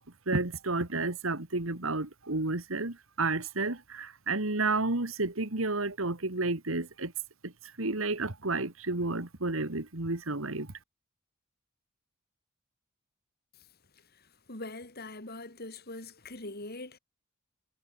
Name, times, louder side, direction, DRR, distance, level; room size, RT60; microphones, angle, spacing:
voice 1, 0.3-7.1 7.4-7.5 7.8-10.7, right 3 dB, 75° right, 2.3 m, -31 dB
voice 2, 14.1-17.0, left 2 dB, 50° left, 5.2 m, -43 dB
head